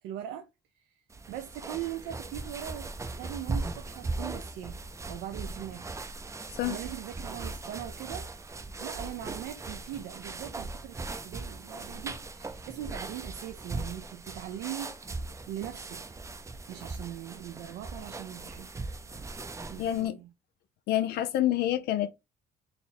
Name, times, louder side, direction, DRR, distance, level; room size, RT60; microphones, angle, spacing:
voice 1, 0.0-0.5 0.8-0.9 1.3-2.9 3.2-4.8 5.1-6.1 6.4-8.3 8.8-14.9 15.5-16.2 16.7-18.7 19.7-20.3, right 12 dB, 85° right, 0.5 m, -40 dB
sound 1, 1.1-20.1, right 3 dB, 15° right, 0.5 m, -39 dB
voice 2, 19.8-20.2 20.9-22.1, left 13 dB, 70° left, 0.4 m, -27 dB
4.0 x 2.2 x 4.1 m
cardioid pair, 110°, 17 cm